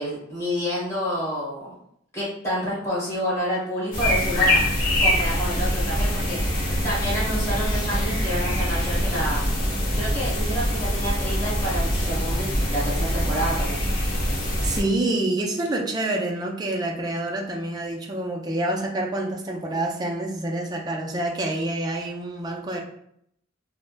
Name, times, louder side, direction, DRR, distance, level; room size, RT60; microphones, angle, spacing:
voice 1, 0.0-1.7 2.1-4.6 5.0-6.4 6.8-9.4 9.9-13.8, equal, 15° left, -8 dB, 1.4 m, -28 dB
sound 1, 3.9-14.8, equal, 50° left, 0.9 m, -24 dB
voice 2, 14.6-22.8, right 2 dB, 20° right, 0 dB, 0.4 m, -27 dB
3.3 x 2.1 x 2.5 m, 0.71 s
head